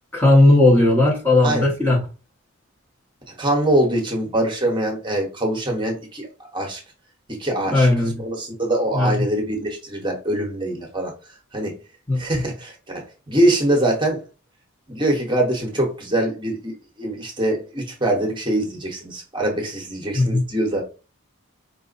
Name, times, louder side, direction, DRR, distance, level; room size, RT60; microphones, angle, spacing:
voice 1, 0.1-2.0 7.7-8.2 8.9-9.2 12.1-12.2 20.1-20.4, left 2 dB, 10° left, 0.8 m, -16 dB
voice 2, 3.3-6.3 6.5-6.8 7.4-7.9 8.2-11.1 11.5-11.7 12.1-14.2 14.9-20.8, right 1 dB, 20° right, 0.9 m, -23 dB
5.0 x 2.1 x 3.9 m
head